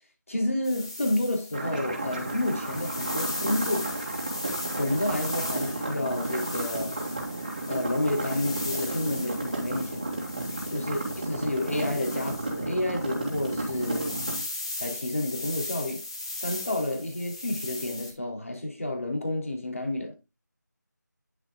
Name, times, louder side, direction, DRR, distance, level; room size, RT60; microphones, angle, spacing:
voice 1, 0.3-3.9 4.8-7.0 7.7-10.1 10.7-14.2 14.8-16.0 16.4-20.2, left 1 dB, 45° left, 3.0 m, -30 dB
sound 1, 0.6-18.1, left 2 dB, 15° left, 1.4 m, -38 dB
sound 2, 1.5-14.4, right 2 dB, 25° right, 2.5 m, -33 dB
10.5 x 7.3 x 2.3 m
figure-of-eight pair, 175°, 10 cm